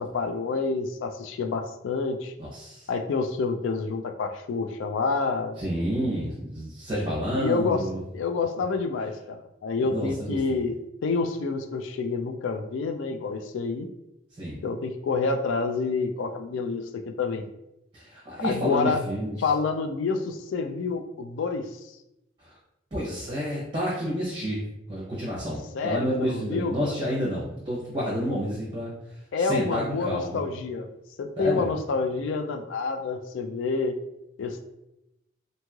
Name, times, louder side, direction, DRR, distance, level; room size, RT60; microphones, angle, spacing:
voice 1, 0.0-2.3 2.9-5.6 7.3-7.8 8.1-13.9 14.6-17.4 18.4-19.0 19.4-21.7 25.7-26.9 29.3-30.9 31.2-34.0 34.4-34.6, left 4 dB, 85° left, 7 dB, 0.3 m, -28 dB
voice 2, 2.4-2.9 5.6-8.0 9.8-10.6 14.4-14.6 17.9-19.5 22.4-22.6 22.9-28.9 29.4-30.4 31.4-31.7, equal, 30° right, -6 dB, 0.7 m, -30 dB
3.0 x 2.7 x 2.3 m, 0.89 s
head